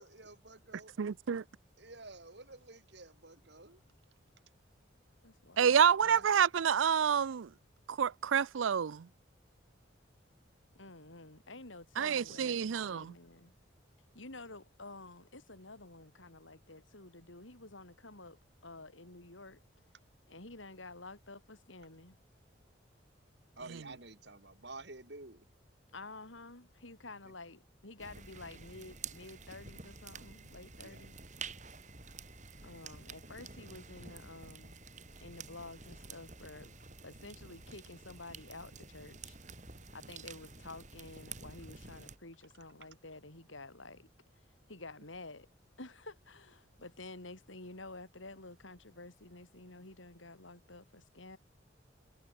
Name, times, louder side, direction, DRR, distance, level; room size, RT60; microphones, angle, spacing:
voice 1, 0.0-0.9 1.8-3.8 6.0-6.2 23.6-25.4 27.2-27.3 30.8-31.0, right 3 dB, 60° right, 3.3 m, -50 dB
voice 2, 1.0-1.4 5.6-7.5 7.9-9.1 12.0-13.1, right 7 dB, 90° right, 0.5 m, -28 dB
voice 3, 5.2-6.3 10.7-13.5 14.1-19.6 20.3-22.2 25.9-31.1 32.6-34.8 35.2-36.7 37.0-39.4 39.9-44.1 44.7-45.5 45.8-51.4, left 2 dB, 85° left, 4.7 m, -50 dB
sound 1, 28.0-42.2, right 5 dB, 40° right, 5.1 m, -50 dB
head